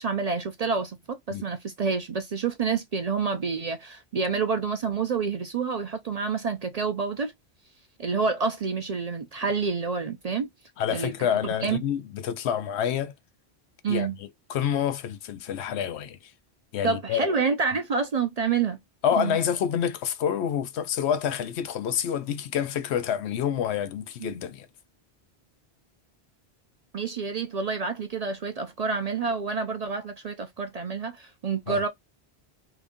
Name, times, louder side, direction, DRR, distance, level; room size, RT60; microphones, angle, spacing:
voice 1, 0.0-7.3 8.0-10.5 10.9-11.3 11.6-11.8 13.8-14.2 16.8-18.8 19.2-19.4 24.2-24.4 26.9-31.9, right 5 dB, 55° right, 0.5 m, -28 dB
voice 2, 10.8-13.1 13.9-16.2 16.7-17.3 19.0-24.7 31.7-31.8, left 9 dB, 85° left, 0.9 m, -28 dB
2.9 x 2.6 x 3.5 m
omnidirectional pair, 1.1 m